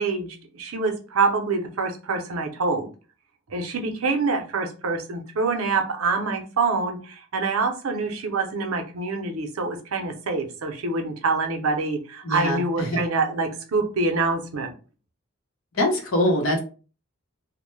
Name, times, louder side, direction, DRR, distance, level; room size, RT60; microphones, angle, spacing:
voice 1, 0.0-2.9 3.5-14.7, right 4 dB, 90° right, 5 dB, 0.6 m, -26 dB
voice 2, 12.2-13.0 15.7-16.6, left 1 dB, 75° left, 3 dB, 0.8 m, -23 dB
2.1 x 2.0 x 3.1 m, 0.35 s
head